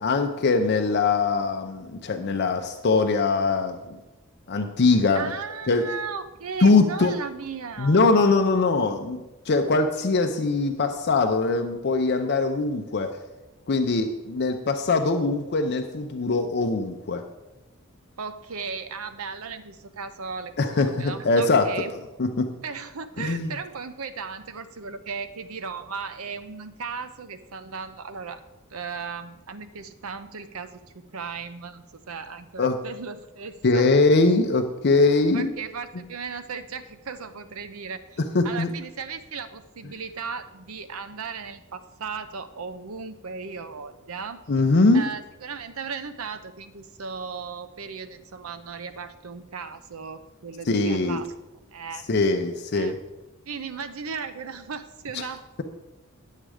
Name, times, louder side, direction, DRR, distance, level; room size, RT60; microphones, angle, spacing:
voice 1, 0.0-4.0 4.5-5.3 5.7-5.8 6.6-7.1 7.8-13.2 13.7-17.2 20.6-21.7 22.2-22.5 23.2-23.5 32.6-32.8 33.6-35.5 38.3-38.7 44.5-45.1 50.7-51.2 52.1-53.0, left 3 dB, 50° left, 5 dB, 0.6 m, -22 dB
voice 2, 5.1-8.0 18.2-21.9 22.6-28.4 28.7-33.9 35.3-38.2 38.4-44.4 44.9-51.3 51.7-52.1 52.7-52.9 53.5-55.4, right 5 dB, 85° right, 11 dB, 0.7 m, -36 dB
10.0 x 7.4 x 4.8 m, 1.0 s
head